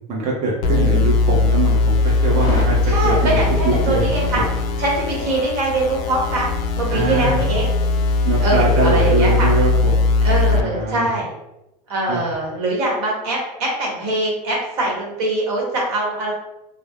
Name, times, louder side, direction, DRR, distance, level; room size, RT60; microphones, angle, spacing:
voice 1, 0.1-2.8 3.0-3.4 3.6-4.0 6.9-7.4 8.2-9.9 10.5-11.1 12.1-12.2, right 2 dB, 35° right, -3 dB, 0.7 m, -22 dB
sound 1, 0.6-10.6, left 3 dB, 60° left, 0.4 m, -19 dB
sound 2, 2.4-10.5, left 5 dB, 20° left, 0.8 m, -33 dB
voice 2, 2.8-4.4 4.8-7.7 8.4-9.5 10.2-11.3 11.9-16.3, right 2 dB, 70° right, -3 dB, 1.2 m, -23 dB
2.2 x 2.1 x 3.4 m, 0.92 s
supercardioid pair, 125°, 20 cm